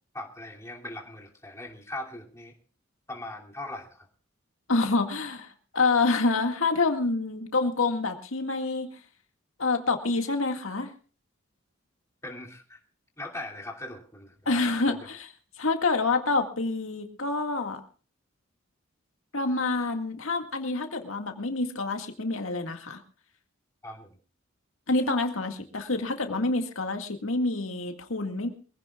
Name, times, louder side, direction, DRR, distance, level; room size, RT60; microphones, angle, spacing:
voice 1, 0.1-2.5 3.1-4.1 12.2-12.8 13.2-15.0 23.8-24.2, left 1 dB, 15° left, 0 dB, 2.7 m, -40 dB
voice 2, 4.7-8.9 9.6-10.9 14.5-15.3 15.6-17.8 19.3-23.0 24.9-28.5, left 3 dB, 80° left, 5 dB, 2.0 m, -27 dB
24.0 x 16.5 x 2.4 m, 0.38 s
head